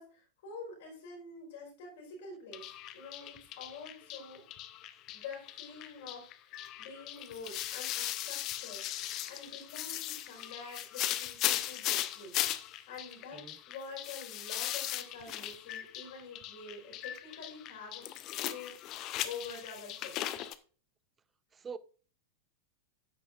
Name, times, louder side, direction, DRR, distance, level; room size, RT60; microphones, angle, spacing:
voice 1, 0.0-2.7 2.9-4.5 5.1-8.8 9.3-12.4 12.9-18.1 18.4-20.2, left 4 dB, 55° left, 4.5 m, -47 dB
sound 1, 2.5-20.5, left 13 dB, 35° left, 0.6 m, -38 dB
voice 2, 13.3-13.6 21.5-21.8, right 6 dB, 20° right, 0.5 m, -44 dB
10.0 x 8.8 x 2.5 m
figure-of-eight pair, 90°, 0 cm